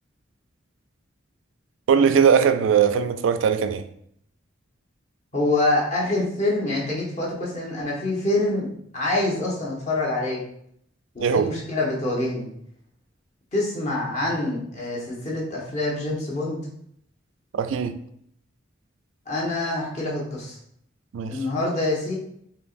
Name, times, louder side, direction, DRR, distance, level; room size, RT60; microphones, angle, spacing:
voice 1, 1.9-3.9 11.2-11.5 17.5-18.0 21.1-21.4, right 7 dB, 85° right, 9 dB, 0.3 m, -20 dB
voice 2, 5.3-8.7 8.9-10.4 11.1-12.5 13.5-16.6 19.3-20.6 21.3-22.1, left 2 dB, 35° left, -4 dB, 1.0 m, -25 dB
4.5 x 2.9 x 2.5 m, 0.69 s
head